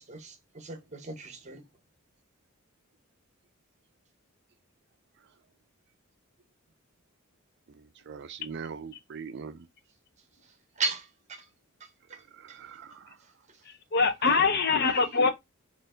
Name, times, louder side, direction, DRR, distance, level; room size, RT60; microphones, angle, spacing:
voice 1, 0.0-1.6 10.8-11.4 12.5-12.6, right 3 dB, 30° right, 0.8 m, -35 dB
voice 2, 7.7-9.7 12.3-13.2, right 6 dB, 50° right, 0.4 m, -42 dB
voice 3, 13.9-15.3, left 4 dB, 45° left, 0.6 m, -23 dB
4.4 x 2.6 x 3.6 m
head